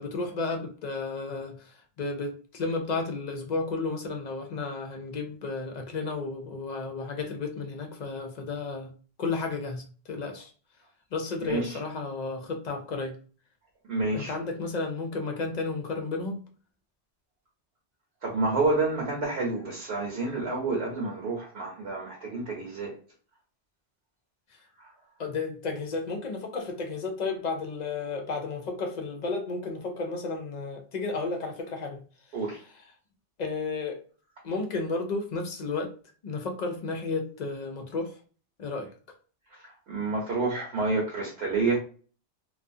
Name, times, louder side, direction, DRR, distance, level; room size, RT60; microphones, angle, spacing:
voice 1, 0.0-8.9 9.2-10.5 11.1-13.2 14.1-16.4 25.2-32.0 32.6-32.8 33.4-34.0 34.4-35.9 36.2-38.1 38.6-38.9, left 3 dB, 55° left, 3 dB, 0.5 m, -33 dB
voice 2, 11.4-11.8 13.9-14.3 18.2-22.9 32.3-32.6 39.9-41.8, right 3 dB, 65° right, -2 dB, 0.9 m, -28 dB
2.4 x 2.3 x 2.6 m, 0.39 s
omnidirectional pair, 1.2 m